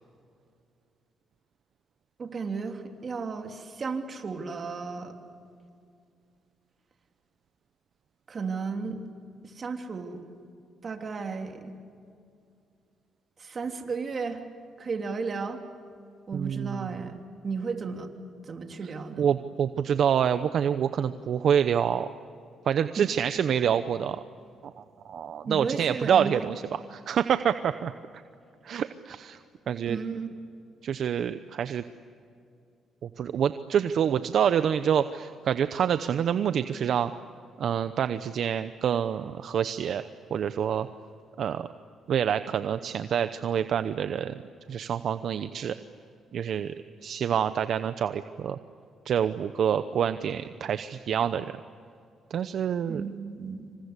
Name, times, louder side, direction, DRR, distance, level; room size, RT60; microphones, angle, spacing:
voice 1, 2.2-5.1 8.3-9.0 9.4-10.2 10.8-11.7 13.4-14.4 14.8-15.6 16.3-18.1 18.5-19.3 23.0-23.1 25.5-26.5 29.8-30.3 52.9-53.7, right 5 dB, 40° right, 4 dB, 3.2 m, -34 dB
voice 2, 16.3-17.0 19.2-22.1 22.7-24.2 24.8-27.9 28.6-29.4 29.7-30.0 30.8-31.8 33.0-37.1 37.6-40.0 40.3-40.9 41.4-41.7 42.1-44.4 44.7-45.8 46.3-46.7 47.0-48.6 49.0-51.5 52.3-53.0, right 8 dB, 65° right, 11 dB, 0.8 m, -27 dB
27.5 x 26.5 x 8.3 m, 2.4 s
cardioid pair, 90°, 0 cm